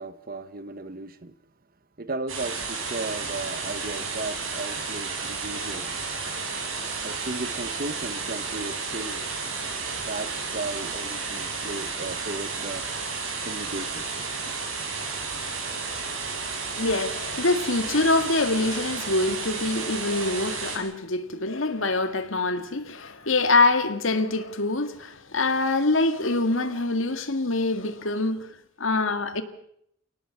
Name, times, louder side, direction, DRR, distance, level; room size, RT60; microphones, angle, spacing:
voice 1, 0.0-1.3 2.0-6.0 7.0-9.3 10.1-12.9 13.4-14.1, right 2 dB, 45° right, 1.2 m, -35 dB
sound 1, 2.3-20.8, right 4 dB, 75° right, 7.1 m, -32 dB
voice 2, 16.8-29.4, left 2 dB, 75° left, 2.0 m, -25 dB
29.5 x 18.5 x 5.8 m
head